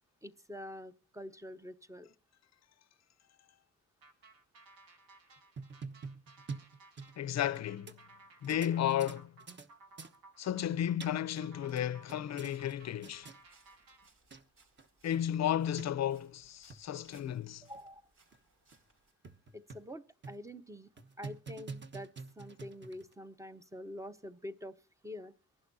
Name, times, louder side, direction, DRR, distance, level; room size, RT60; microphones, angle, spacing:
voice 1, 0.2-2.1 17.6-18.0 19.5-20.9 21.2-22.1 22.4-24.7 25.0-25.3, left 1 dB, 10° right, 0.7 m, -46 dB
sound 1, 4.0-14.1, right 2 dB, 80° right, 2.6 m, -60 dB
sound 2, 5.4-7.6 7.9-8.0 8.4-9.7 10.0-10.2 10.7-11.4 11.7-12.8 13.0-13.4 14.0-14.1 14.3-14.4 14.8-14.9 15.1-15.2 15.8-15.9 16.5-16.8 17.3-17.4 17.7-17.8 18.3-18.4 18.7-18.8 19.2-19.9 20.2-20.5 21.0-23.1, right 4 dB, 30° right, 1.2 m, -46 dB
voice 2, 7.2-8.0 8.4-9.3 10.4-13.3 15.0-17.7, left 10 dB, 50° left, 0.6 m, -33 dB
sound 3, 12.5-19.1, right 3 dB, 65° right, 4.6 m, -68 dB
24.5 x 11.5 x 2.7 m
cardioid pair, 120°, 35 cm